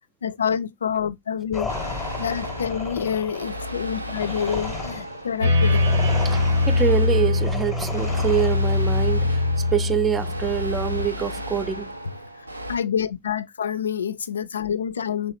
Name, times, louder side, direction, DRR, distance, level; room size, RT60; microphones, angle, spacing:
voice 1, 0.2-1.9 2.2-5.8 12.7-15.3, left 7 dB, 70° left, 0.3 m, -27 dB
sound 1, 1.5-8.9, left 4 dB, 15° left, 0.7 m, -35 dB
sound 2, 1.7-12.8, equal, 85° right, 0.4 m, -34 dB
sound 3, 5.4-11.1, left 2 dB, 70° right, 0.9 m, -22 dB
voice 2, 6.2-9.4 9.7-11.9, right 9 dB, 20° right, 0.3 m, -25 dB
3.4 x 3.1 x 2.8 m
figure-of-eight pair, 90°, 0 cm